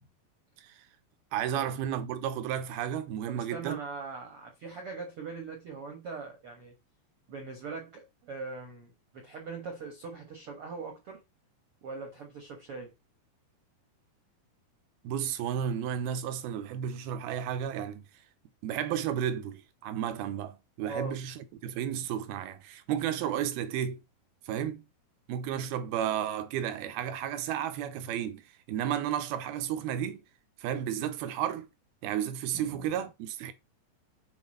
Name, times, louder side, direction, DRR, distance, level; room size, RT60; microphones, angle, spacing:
voice 1, 1.3-3.8 15.0-18.0 18.6-24.0 24.5-24.8 25.3-28.4 28.7-30.2 30.6-31.7 32.0-33.5, right 9 dB, 85° right, 2.7 m, -32 dB
voice 2, 3.3-6.7 7.3-11.2 11.8-12.9 20.9-21.2 25.5-25.7 32.5-32.9, right 4 dB, 60° right, 1.5 m, -41 dB
8.1 x 4.2 x 5.5 m
omnidirectional pair, 4.4 m